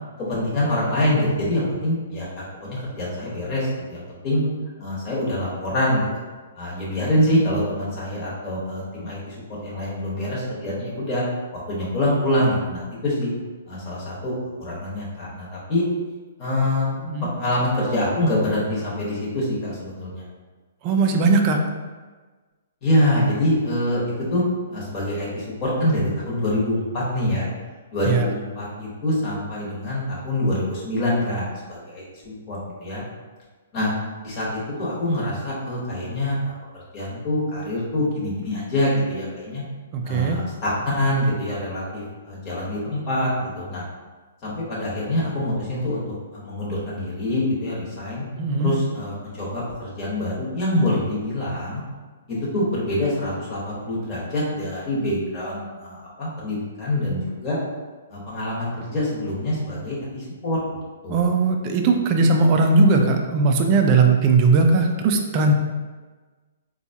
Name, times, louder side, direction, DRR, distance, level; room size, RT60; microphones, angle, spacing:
voice 1, 0.2-4.4 4.8-6.1 6.5-9.3 9.6-11.2 11.7-13.3 13.7-14.3 14.6-15.8 16.4-16.9 17.4-20.2 22.8-24.4 24.7-27.5 27.9-33.0 33.7-33.9 34.2-39.6 40.0-43.8 44.4-46.0 46.3-48.2 48.6-51.8 52.3-57.6 58.1-60.6 61.0-61.3, left 1 dB, 25° left, -7 dB, 1.2 m, -25 dB
voice 2, 17.0-17.3 20.8-21.7 28.0-28.3 39.9-40.4 48.4-48.7 61.1-65.5, right 3 dB, 30° right, 3 dB, 0.4 m, -18 dB
4.2 x 2.3 x 2.7 m, 1.3 s
hypercardioid pair, 160°, 0 cm